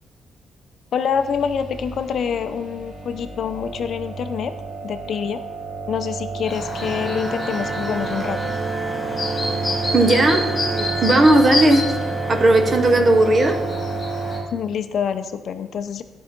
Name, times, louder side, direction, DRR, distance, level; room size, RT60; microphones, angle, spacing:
voice 1, 0.9-4.5 4.8-5.4 5.9-8.5 14.5-16.0, left 7 dB, 55° left, 9 dB, 0.5 m, -26 dB
sound 1, 1.1-14.4, right 4 dB, 70° right, 2.1 m, -30 dB
Chirp tweet, 6.4-14.4, left 2 dB, 30° left, 2.0 m, -29 dB
sound 2, 6.8-12.9, right 2 dB, 15° right, 0.3 m, -32 dB
voice 2, 9.9-10.5 11.0-11.8 12.3-13.6, right 2 dB, 30° right, 6 dB, 0.9 m, -15 dB
12.0 x 5.5 x 5.2 m, 1.1 s
wide cardioid pair, 175°, 0 cm